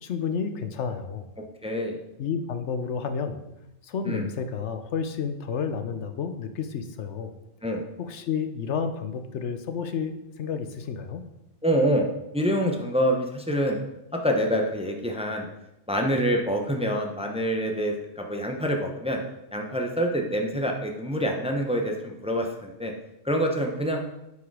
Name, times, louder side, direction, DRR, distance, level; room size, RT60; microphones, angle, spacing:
voice 1, 0.0-1.3 2.2-3.4 3.8-7.3 8.0-11.2, left 6 dB, 75° left, 9 dB, 1.0 m, -31 dB
voice 2, 1.6-2.0 4.0-4.2 7.6-7.8 11.6-12.1 12.3-13.8 14.1-15.5 15.9-19.2 19.5-22.9 23.2-24.0, equal, 5° right, 2 dB, 0.8 m, -26 dB
9.6 x 4.9 x 4.8 m, 0.90 s
omnidirectional pair, 1.2 m